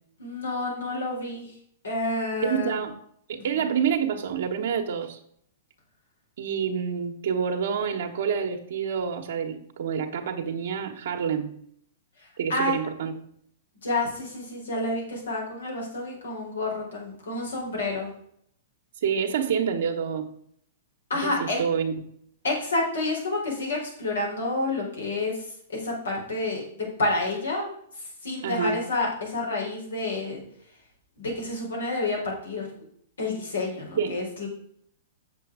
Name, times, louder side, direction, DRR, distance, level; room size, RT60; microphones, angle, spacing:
voice 1, 0.2-1.5 1.8-2.8 3.5-3.7 12.5-12.8 13.8-18.1 21.1-21.6 22.4-25.4 25.7-27.7 28.2-30.4 31.2-32.8 33.2-34.5, left 2 dB, 90° left, -2 dB, 4.4 m, -29 dB
voice 2, 2.4-3.0 3.3-5.2 6.4-11.5 12.4-13.1 19.0-20.3 21.1-22.0 28.4-28.8 34.0-34.2, right 7 dB, 70° right, 2 dB, 1.1 m, -27 dB
7.7 x 7.0 x 4.9 m, 0.66 s
hypercardioid pair, 125°, 0 cm